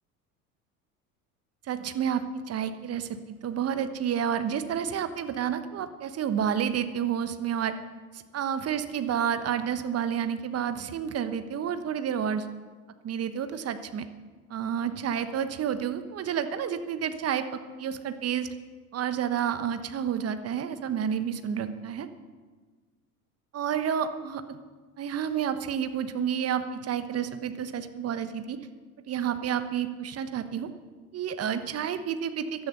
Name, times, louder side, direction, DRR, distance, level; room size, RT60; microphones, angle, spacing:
voice 1, 1.7-7.7 8.1-12.5 13.0-14.0 14.5-17.5 17.8-18.5 18.9-22.1 23.5-24.6 25.0-28.6 29.1-30.7 31.1-32.7, right 8 dB, 35° right, 10 dB, 1.2 m, -30 dB
15.5 x 12.0 x 6.7 m, 1.4 s
figure-of-eight pair, 70°, 44 cm